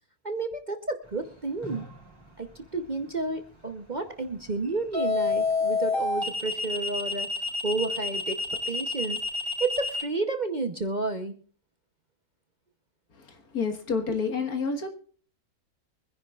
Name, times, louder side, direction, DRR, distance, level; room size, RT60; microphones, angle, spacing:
voice 1, 0.2-1.9 2.4-7.3 7.6-9.2 9.6-11.4 14.1-14.2, right 3 dB, 35° right, 6 dB, 0.8 m, -31 dB
sound 1, 1.6-2.0 4.9-10.0, left 3 dB, 10° left, 3.6 m, -28 dB
voice 2, 13.5-14.9, left 5 dB, 70° left, 5 dB, 2.1 m, -28 dB
24.0 x 10.5 x 2.4 m, 0.43 s
omnidirectional pair, 1.6 m